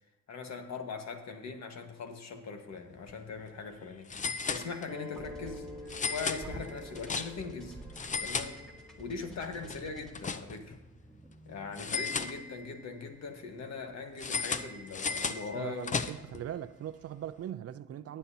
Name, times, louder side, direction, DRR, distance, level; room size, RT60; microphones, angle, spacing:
voice 1, 0.3-5.7 6.1-7.8 8.2-8.7 9.0-10.8 11.4-16.1, left 4 dB, 60° left, 1.5 m, -41 dB
sound 1, 2.9-3.1 3.4-3.5 4.1-5.1 5.9-7.6 7.9-9.1 9.4-10.8 11.8-12.9 14.2-16.4, left 5 dB, 25° left, 0.6 m, -36 dB
sound 2, 4.9-10.0, left 3 dB, 85° left, 2.2 m, -48 dB
sound 3, 5.1-12.5, right 2 dB, ahead, 1.9 m, -50 dB
voice 2, 15.3-18.2, right 11 dB, 50° right, 0.5 m, -40 dB
19.0 x 8.1 x 2.8 m
cardioid pair, 90°, 30 cm